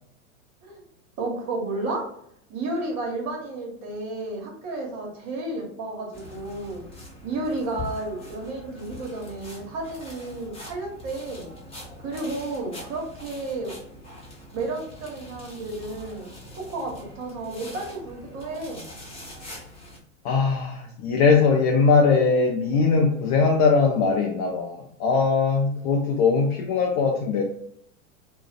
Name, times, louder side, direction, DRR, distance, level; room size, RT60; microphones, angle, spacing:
voice 1, 1.2-2.0 2.5-6.8 7.2-11.5 12.0-13.8 14.5-18.9, right 2 dB, 40° right, 0 dB, 1.1 m, -32 dB
sound 1, 6.1-20.0, left 1 dB, 15° left, 0.9 m, -43 dB
voice 2, 20.2-27.4, left 4 dB, 35° left, 1 dB, 0.4 m, -21 dB
2.4 x 2.2 x 2.4 m, 0.69 s
hypercardioid pair, 105°, 39 cm